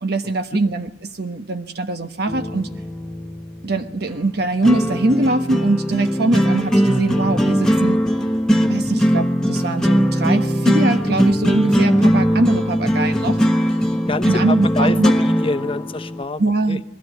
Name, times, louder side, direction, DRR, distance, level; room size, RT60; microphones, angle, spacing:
voice 1, 0.0-2.7 3.6-8.0 8.7-13.4 14.2-15.1 16.4-16.8, right 2 dB, 60° right, 6 dB, 1.2 m, -22 dB
sound 1, 2.3-16.2, equal, 5° left, 1.3 m, -19 dB
voice 2, 14.1-16.4 16.7-16.8, left 2 dB, 30° left, 11 dB, 0.9 m, -25 dB
22.0 x 16.5 x 9.2 m, 0.80 s
head